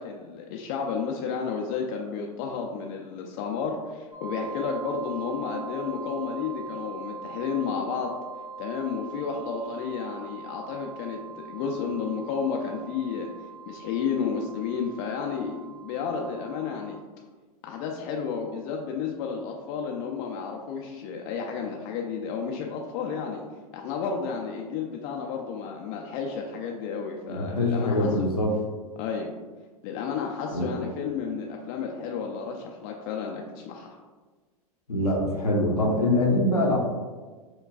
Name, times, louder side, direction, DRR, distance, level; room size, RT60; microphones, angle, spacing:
voice 1, 0.0-8.1 8.6-13.3 13.7-17.0 17.6-23.4 23.7-28.1 29.0-29.3 29.8-33.9, left 6 dB, 40° left, 1 dB, 0.4 m, -32 dB
sound 1, 4.1-16.9, right 4 dB, 35° right, 1.2 m, -41 dB
voice 2, 27.3-28.5 30.5-30.7 34.9-36.8, left 1 dB, 90° left, -1 dB, 0.7 m, -24 dB
4.7 x 2.2 x 2.3 m, 1.4 s
hypercardioid pair, 100°, 19 cm